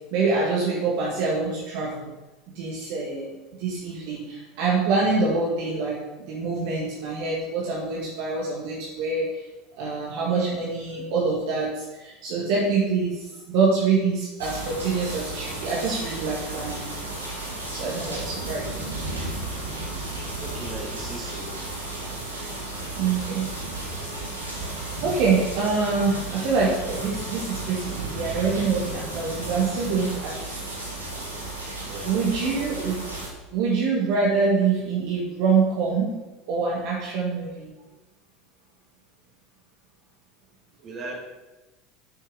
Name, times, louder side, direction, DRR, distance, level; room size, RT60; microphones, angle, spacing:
voice 1, 0.1-2.1 2.6-3.3 3.6-6.0 6.3-9.4 9.8-16.9 17.7-18.7 23.0-23.5 23.8-24.1 25.0-30.7 32.0-33.0 33.5-36.1 36.5-37.7, right 4 dB, 60° right, -4 dB, 1.7 m, -25 dB
sound 1, 14.4-33.3, right 2 dB, 90° right, 1.8 m, -33 dB
voice 2, 20.4-21.5 31.9-32.3 40.8-41.3, right 2 dB, 40° right, -1 dB, 2.7 m, -37 dB
8.2 x 6.4 x 4.9 m, 1.1 s
figure-of-eight pair, 75°, 0 cm